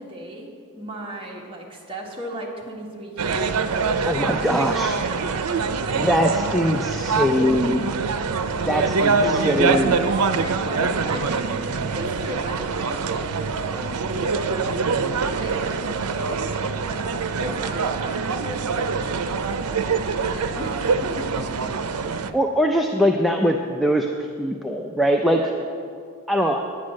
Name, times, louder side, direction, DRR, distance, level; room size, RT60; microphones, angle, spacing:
voice 1, 0.0-3.6 5.1-5.2 5.8-6.1 9.2-14.6 15.3-21.5 25.2-25.7, equal, 25° right, -2 dB, 1.7 m, -36 dB
sound 1, 3.2-22.3, right 4 dB, 90° right, 0.6 m, -24 dB
voice 2, 4.1-5.0 5.9-7.9 8.6-10.0 22.3-24.1 24.4-25.4 26.3-26.6, equal, ahead, 1 dB, 0.4 m, -22 dB
9.7 x 9.6 x 6.3 m, 2.3 s
head